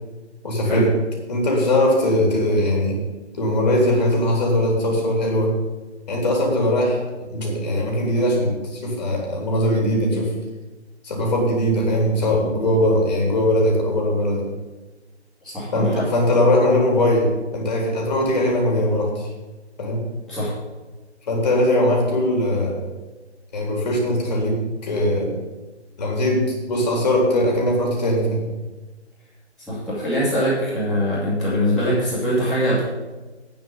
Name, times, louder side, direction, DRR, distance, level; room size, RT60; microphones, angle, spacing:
voice 1, 0.4-0.9 1.3-3.0 3.3-5.5 6.1-7.0 7.3-10.3 11.0-14.4 15.7-19.3 19.8-20.0 21.3-22.8 23.5-25.3 26.0-28.5, left 1 dB, 35° left, 0 dB, 3.9 m, -20 dB
voice 2, 15.4-16.0 20.3-20.5 29.7-32.8, equal, ahead, -15 dB, 2.9 m, -22 dB
9.1 x 7.9 x 8.9 m, 1.2 s
figure-of-eight pair, 155°, 34 cm